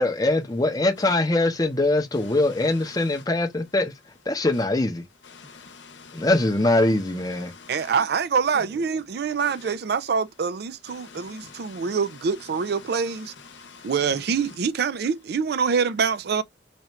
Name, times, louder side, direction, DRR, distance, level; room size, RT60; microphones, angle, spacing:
voice 1, 0.0-3.9 4.3-5.0 6.1-7.5, left 2 dB, 20° left, 0.7 m, -22 dB
voice 2, 2.9-3.3 4.5-4.6 5.2-7.9 9.4-9.7 10.9-12.0 12.5-14.5, left 5 dB, 80° left, 0.9 m, -46 dB
voice 3, 7.7-13.3 13.8-16.4, right 5 dB, 60° right, 0.4 m, -25 dB
4.2 x 2.4 x 3.1 m
head